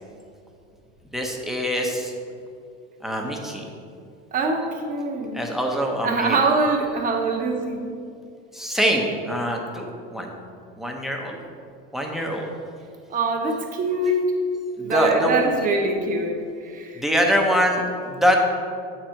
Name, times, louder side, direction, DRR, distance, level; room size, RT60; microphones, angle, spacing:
voice 1, 1.1-2.1 3.0-3.6 5.3-6.4 8.5-10.3 10.8-11.4 11.9-12.5 14.8-15.4 17.0-18.5, equal, ahead, 0 dB, 0.8 m, -23 dB
voice 2, 4.3-5.4 6.0-7.8 13.1-14.2 14.8-16.4 16.6-17.0, right 3 dB, 30° right, 2 dB, 1.1 m, -23 dB
6.7 x 4.5 x 6.3 m, 2.4 s
supercardioid pair, 130°, 30 cm